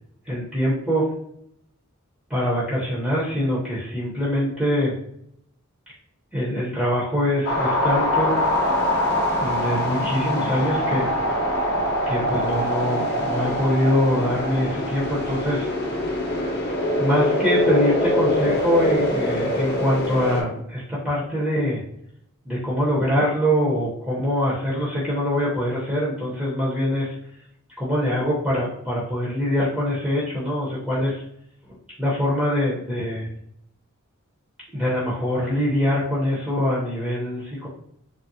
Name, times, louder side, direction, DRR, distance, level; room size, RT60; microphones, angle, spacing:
voice 1, 0.3-1.1 2.3-4.9 6.3-8.3 9.4-11.1 12.1-15.7 17.0-21.8 22.5-27.1 27.8-31.2 32.0-33.3 34.7-37.7, equal, 5° right, -7 dB, 0.6 m, -24 dB
sound 1, 7.4-20.4, left 1 dB, 50° left, 0.7 m, -23 dB
3.5 x 2.0 x 2.6 m, 0.72 s
head